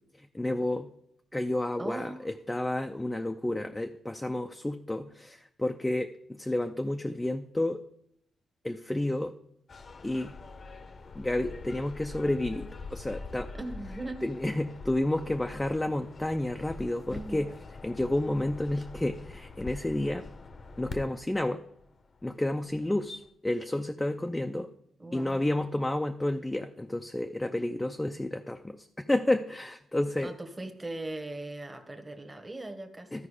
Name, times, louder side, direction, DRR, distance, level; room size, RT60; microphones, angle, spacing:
voice 1, 0.3-0.9 1.3-6.1 6.4-7.8 8.6-9.3 10.0-10.4 11.2-13.5 14.2-17.5 17.8-20.3 20.8-21.6 22.2-24.7 25.1-30.3 33.1-33.3, left 1 dB, 10° left, 5 dB, 0.5 m, -30 dB
voice 2, 1.8-2.2 13.5-14.2 17.1-17.4 25.0-25.4 30.2-33.2, right 2 dB, 15° right, 6 dB, 1.2 m, -39 dB
sound 1, 9.7-23.3, left 3 dB, 45° left, 0.8 m, -45 dB
13.0 x 4.7 x 4.9 m, 0.75 s
cardioid pair, 100°, 0 cm